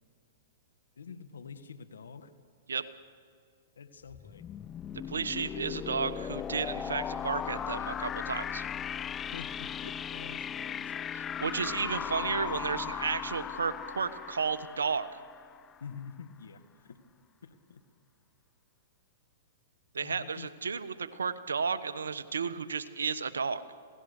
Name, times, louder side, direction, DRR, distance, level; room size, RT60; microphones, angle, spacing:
voice 1, 1.0-2.3 3.7-4.4 9.3-10.9 15.8-17.1 17.4-17.8 20.0-20.5, left 6 dB, 85° left, 11 dB, 1.6 m, -47 dB
sound 1, 4.1-15.8, left 8 dB, 20° left, 0.5 m, -37 dB
voice 2, 5.1-8.6 11.1-15.1 19.9-23.6, right 5 dB, 90° right, 12 dB, 1.1 m, -33 dB
27.0 x 18.0 x 6.7 m, 2.2 s
hypercardioid pair, 125°, 0 cm